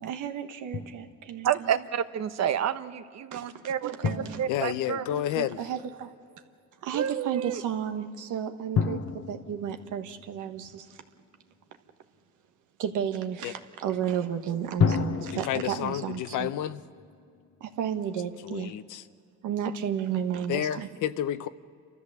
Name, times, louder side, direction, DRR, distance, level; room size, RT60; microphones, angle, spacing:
voice 1, 0.1-1.5 3.3-4.4 5.1-6.1 6.8-10.9 12.8-16.5 17.6-18.7 19.4-20.9, right 9 dB, 85° right, 7 dB, 1.4 m, -33 dB
Drum, 0.7-1.5 4.0-5.8 8.7-11.2 14.8-17.9, left 6 dB, 55° left, 1.0 m, -32 dB
voice 2, 1.4-4.0 4.4-5.1 6.9-7.6, right 9 dB, 60° right, 11 dB, 1.0 m, -29 dB
voice 3, 4.5-5.6 13.4-13.5 15.1-16.8 18.4-19.1 20.5-21.5, left 11 dB, 90° left, 13 dB, 0.8 m, -30 dB
29.0 x 13.5 x 7.2 m, 2.4 s
cardioid pair, 90°, 30 cm